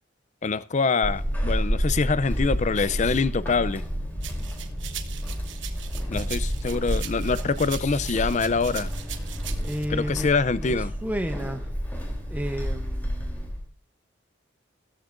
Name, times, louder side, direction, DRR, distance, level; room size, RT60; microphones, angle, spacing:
voice 1, 0.4-3.8 6.1-8.9 9.9-10.9, left 4 dB, 40° left, 0.5 m, -25 dB
Walk footsteps / Squeak, 1.0-13.7, equal, 10° left, 3.1 m, -30 dB
sound 1, 4.2-9.8, right 11 dB, 70° right, 1.1 m, -40 dB
voice 2, 9.6-10.3 10.6-10.8 11.0-11.7 12.3-13.5, equal, 10° right, 0.8 m, -32 dB
15.5 x 13.5 x 2.6 m
head